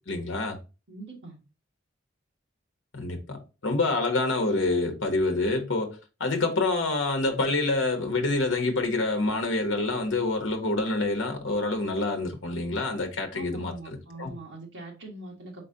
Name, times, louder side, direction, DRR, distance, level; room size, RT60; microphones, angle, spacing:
voice 1, 0.1-0.6 2.9-14.3, left 2 dB, 70° left, 0.9 m, -27 dB
voice 2, 0.9-1.4 13.3-15.6, right 2 dB, 65° right, 1.4 m, -42 dB
4.2 x 3.8 x 2.7 m
head